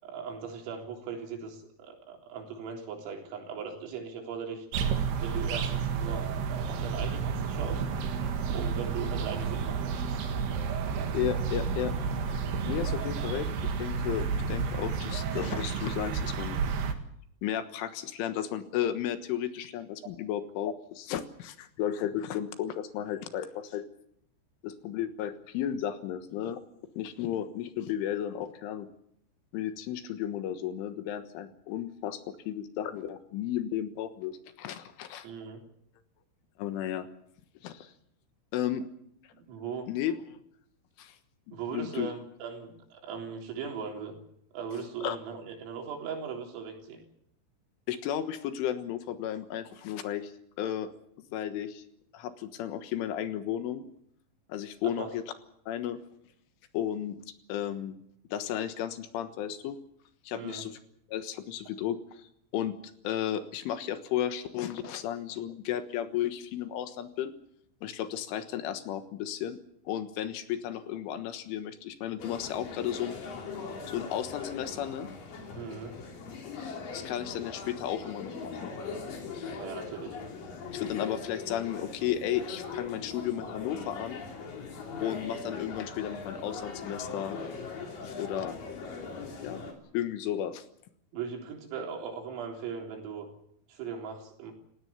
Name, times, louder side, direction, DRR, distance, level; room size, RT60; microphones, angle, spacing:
voice 1, 0.0-4.7 5.2-6.3 6.6-7.8 8.5-10.2 35.2-35.6 39.3-39.9 41.5-44.2 44.5-47.0 55.0-55.1 60.3-60.7 64.8-64.9 75.6-76.0 79.6-80.2 91.1-93.3 93.7-94.5, right 6 dB, 80° right, 2 dB, 6.3 m, -39 dB
sound 1, 4.7-16.9, right 6 dB, 60° right, 3.4 m, -31 dB
voice 2, 11.1-11.9 12.3-16.6 17.4-23.8 24.6-26.6 27.0-28.9 29.5-32.2 32.5-35.3 36.6-37.1 37.6-37.9 38.5-38.8 39.9-40.2 41.0-41.1 41.7-42.1 45.0-45.2 47.9-50.3 50.6-50.9 51.3-51.8 52.1-53.8 54.5-55.2 55.7-56.0 56.7-57.2 57.5-58.0 58.3-59.8 60.3-60.8 61.1-62.0 62.5-62.7 63.1-67.3 67.8-69.6 69.9-73.2 73.9-75.1 76.6-78.7 79.3-79.6 80.7-84.2 85.0-87.4 88.0-88.6 89.4-89.6 89.9-90.6, left 10 dB, 75° left, 9 dB, 3.7 m, -33 dB
sound 2, 72.2-89.7, left 5 dB, 45° left, 4.5 m, -40 dB
29.0 x 17.0 x 7.2 m, 0.72 s
omnidirectional pair, 6.0 m